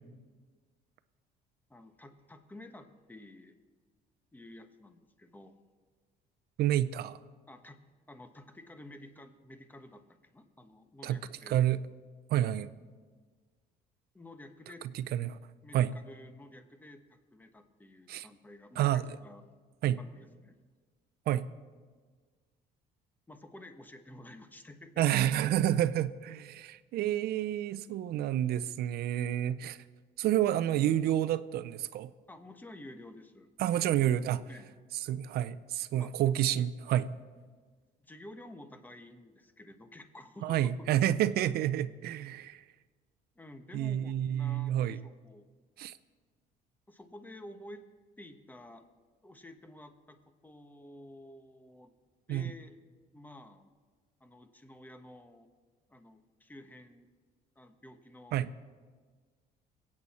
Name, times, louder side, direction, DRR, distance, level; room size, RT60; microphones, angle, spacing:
voice 1, 1.7-3.5 4.3-5.5 7.5-7.8 8.1-11.6 14.1-14.9 15.6-19.5 20.0-20.6 23.3-25.2 32.3-33.5 34.5-34.7 35.9-36.1 38.0-40.7 43.3-45.4 46.9-47.8 48.2-48.9 49.2-51.9 52.3-52.8 53.1-53.7 54.2-55.5 55.9-57.1 57.5-58.4, left 1 dB, 10° left, 1.1 m, -51 dB
voice 2, 6.6-7.2 11.0-11.2 11.5-11.8 12.3-12.7 15.1-15.4 15.7-15.9 18.1-18.3 18.8-19.0 19.8-20.0 21.3-21.5 25.0-29.8 30.2-32.1 33.6-34.4 35.1-37.1 40.4-42.6 43.7-45.0 45.8-45.9 52.3-52.5 58.3-58.5, right 12 dB, 70° right, 0.6 m, -29 dB
23.0 x 8.7 x 4.2 m
cardioid pair, 110°, 17 cm